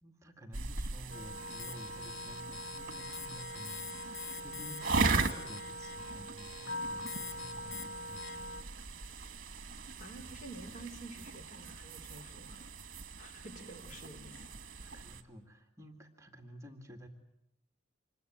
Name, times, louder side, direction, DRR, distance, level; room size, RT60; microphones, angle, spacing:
voice 1, 0.0-9.2 14.3-17.1, equal, 15° right, 4 dB, 2.1 m, -52 dB
sound 1, 0.5-15.2, right 4 dB, 50° right, 1.6 m, -39 dB
sound 2, 1.1-8.6, left 2 dB, 80° left, 1.5 m, -42 dB
voice 2, 10.0-12.6 13.2-14.5, right 1 dB, 40° left, 5 dB, 3.9 m, -49 dB
26.0 x 21.5 x 9.4 m, 0.80 s
head